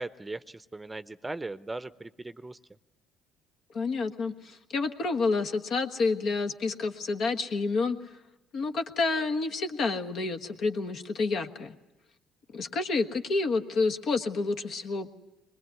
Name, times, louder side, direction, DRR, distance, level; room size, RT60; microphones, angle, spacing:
voice 1, 0.0-2.6, right 2 dB, 15° right, 14 dB, 0.8 m, -38 dB
voice 2, 3.7-8.0 8.5-11.7 12.5-15.1, left 3 dB, 60° left, 6 dB, 1.5 m, -29 dB
22.5 x 20.5 x 9.4 m, 1.0 s
hypercardioid pair, 60°, 0 cm